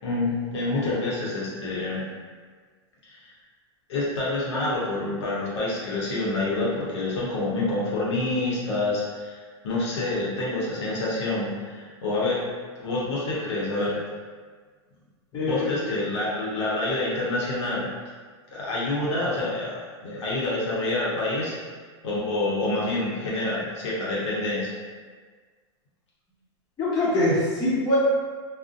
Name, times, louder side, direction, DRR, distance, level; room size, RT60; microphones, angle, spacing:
voice 1, 0.0-2.0 3.0-3.3 3.9-12.4 12.8-14.0 15.3-17.9 18.5-21.5 22.0-24.7, left 2 dB, 85° left, -6 dB, 0.7 m, -27 dB
voice 2, 26.8-28.0, left 1 dB, 30° left, -10 dB, 1.1 m, -23 dB
2.4 x 2.1 x 2.5 m, 1.5 s
supercardioid pair, 125°, 14 cm